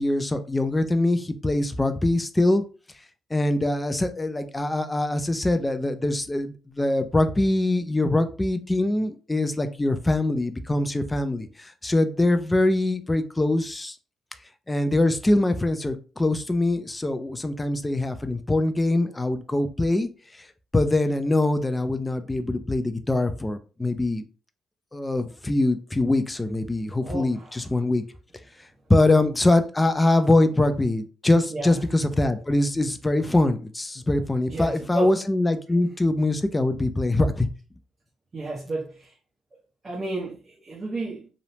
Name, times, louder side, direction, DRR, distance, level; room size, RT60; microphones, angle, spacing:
voice 1, 0.0-2.6 3.3-14.0 14.7-20.5 20.7-24.2 24.9-28.0 28.9-37.5, left 2 dB, 15° left, 0.3 m, -23 dB
voice 2, 27.0-27.6 29.0-29.1 31.5-31.8 34.5-35.1 38.3-39.1 39.8-41.3, right 2 dB, 35° right, 0.8 m, -32 dB
3.0 x 2.0 x 2.7 m
cardioid pair, 90°, 0 cm